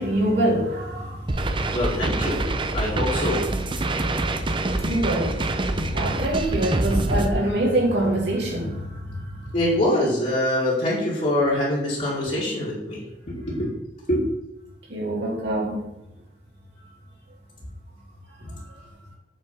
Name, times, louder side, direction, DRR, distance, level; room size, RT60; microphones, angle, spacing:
voice 1, 0.0-1.8 2.9-3.0 3.8-9.5 14.9-15.8, right 1 dB, 75° right, -4 dB, 3.2 m, -26 dB
sound 1, 1.3-7.3, right 2 dB, 30° right, 0.6 m, -25 dB
voice 2, 1.7-2.4 2.7-3.4 9.5-13.8 14.1-14.2, left 1 dB, 45° left, -8 dB, 2.4 m, -24 dB
7.7 x 4.5 x 5.5 m, 0.88 s
head